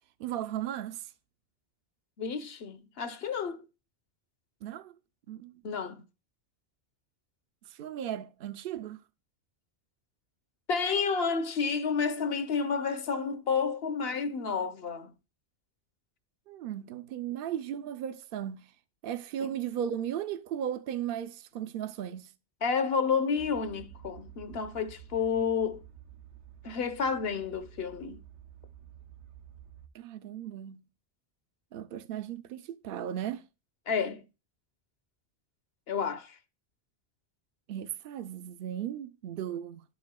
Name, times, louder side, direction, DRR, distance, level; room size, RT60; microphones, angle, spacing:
voice 1, 0.2-1.1 4.6-5.0 5.3-5.8 7.6-9.0 16.5-18.7 19.0-22.3 29.9-30.8 31.7-33.4 37.7-39.8, right 10 dB, 60° right, 0.8 m, -36 dB
voice 2, 2.2-3.6 5.6-6.0 10.7-15.1 19.4-19.5 22.6-25.8 26.6-28.2 33.9-34.2 35.9-36.4, left 5 dB, 65° left, 1.0 m, -30 dB
sound 1, 23.4-29.9, right 10 dB, 85° right, 1.2 m, -51 dB
12.0 x 4.7 x 2.2 m
omnidirectional pair, 1.1 m